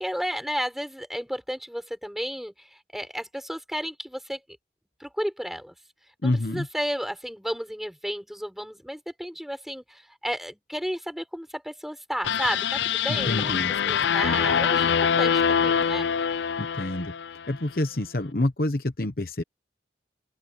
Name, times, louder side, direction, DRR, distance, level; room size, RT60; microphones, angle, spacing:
voice 1, 0.0-4.4 5.0-5.7 6.2-16.1, equal, ahead, 5.7 m, -33 dB
voice 2, 6.2-6.7 13.1-13.7 16.6-17.1 17.5-19.4, left 1 dB, 55° left, 1.1 m, -27 dB
sound 1, 12.2-17.5, left 7 dB, 75° left, 0.5 m, -24 dB
open air
head